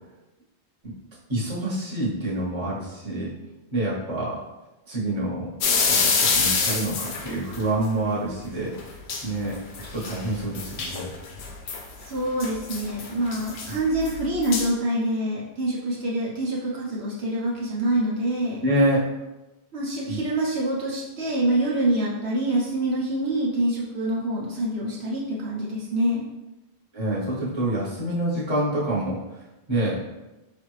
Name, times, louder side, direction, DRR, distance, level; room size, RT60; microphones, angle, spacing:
voice 1, 1.3-3.3 3.7-4.4 4.9-5.5 5.8-8.7 9.2-9.6 9.9-11.1 13.7-13.8 18.6-19.0 20.1-20.2 26.9-29.2 29.7-30.0, right 1 dB, 25° right, -6 dB, 1.1 m, -26 dB
sound 1, 5.6-7.6 8.8-8.9 9.1-9.2 9.5-11.8 12.4-14.7, left 4 dB, 70° left, 0.9 m, -26 dB
voice 2, 12.0-18.6 19.7-26.3, right 1 dB, 70° right, -5 dB, 1.0 m, -26 dB
5.0 x 2.5 x 3.1 m, 1.0 s
omnidirectional pair, 1.1 m